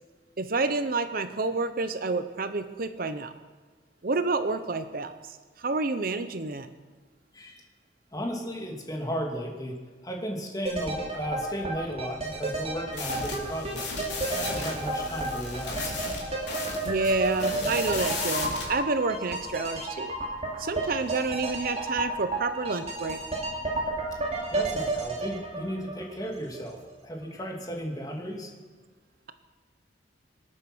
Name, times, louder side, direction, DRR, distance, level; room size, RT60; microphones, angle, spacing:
voice 1, 0.4-3.3 4.0-6.7 16.8-20.1 20.6-23.2, right 3 dB, 50° right, 10 dB, 0.8 m, -29 dB
voice 2, 8.1-9.7 10.0-13.8 14.3-16.0 24.5-26.8 27.0-28.5, equal, 20° left, 0 dB, 2.6 m, -35 dB
sound 1, 10.7-26.6 26.9-27.0, right 2 dB, 35° right, 3.1 m, -32 dB
sound 2, 12.9-18.7, left 3 dB, 75° left, 3.6 m, -35 dB
25.5 x 8.9 x 6.2 m, 1.4 s
head